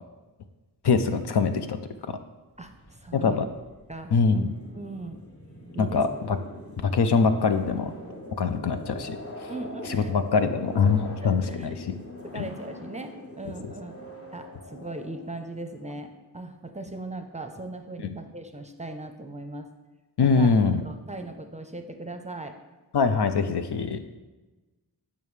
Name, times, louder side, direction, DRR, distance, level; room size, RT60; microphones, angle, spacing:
voice 1, 0.8-2.2 3.1-3.4 4.1-4.5 5.8-6.4 6.8-7.9 8.4-9.2 9.9-11.9 12.4-12.5 20.2-20.8 22.9-24.0, left 5 dB, 65° left, 9 dB, 0.6 m, -23 dB
sound 1, 2.6-16.0, left 1 dB, 35° left, 1.1 m, -43 dB
voice 2, 2.6-3.4 3.9-4.4 4.7-5.2 5.7-6.0 9.5-10.1 11.2-11.7 12.2-14.1 14.3-19.7 20.2-22.6, right 2 dB, 15° right, 6 dB, 0.6 m, -39 dB
9.0 x 5.6 x 3.2 m, 1.2 s
wide cardioid pair, 65°, 43 cm